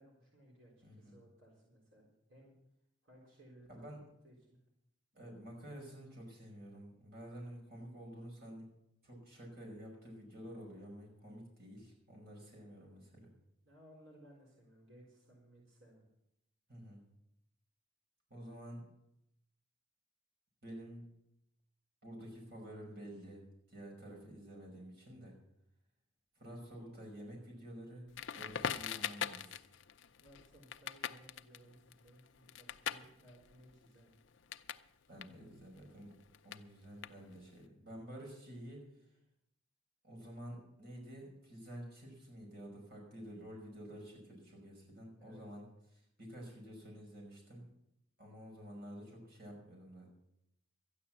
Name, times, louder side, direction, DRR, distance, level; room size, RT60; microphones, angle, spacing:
voice 1, 0.0-2.5 3.0-3.9 4.2-4.6 13.6-16.0 30.2-34.1 45.2-45.4, equal, 85° right, -2 dB, 4.0 m, -61 dB
voice 2, 0.8-1.1 3.7-4.0 5.1-8.7 9.0-13.3 16.7-17.0 18.3-18.9 20.6-21.1 22.0-25.3 26.4-28.1 28.3-29.6 35.1-36.1 36.4-38.9 40.0-45.6 45.9-47.6 48.2-50.1, equal, 55° right, -1 dB, 5.5 m, -50 dB
Crackle, 28.1-34.9 35.1-37.6, left 8 dB, 75° left, 0.6 m, -43 dB
13.0 x 10.0 x 7.3 m, 0.80 s
head